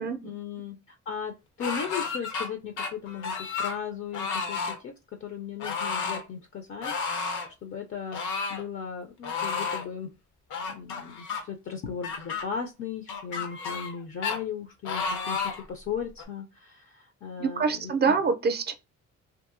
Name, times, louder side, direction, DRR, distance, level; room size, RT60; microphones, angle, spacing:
voice 1, 0.2-8.2 8.5-10.1 10.7-18.2, left 7 dB, 45° left, 0.5 m, -37 dB
sound 1, 1.6-2.5 2.8-3.8 4.1-4.8 5.6-6.2 6.8-7.5 8.1-8.6 9.2-9.9 10.5-11.4 12.0-12.4 13.1-14.0 14.2-14.4 14.8-15.6 16.2-16.3, left 5 dB, 80° left, 0.7 m, -31 dB
voice 2, 17.4-18.7, right 5 dB, 35° right, 0.5 m, -25 dB
2.7 x 2.6 x 2.5 m
cardioid pair, 90°, 30 cm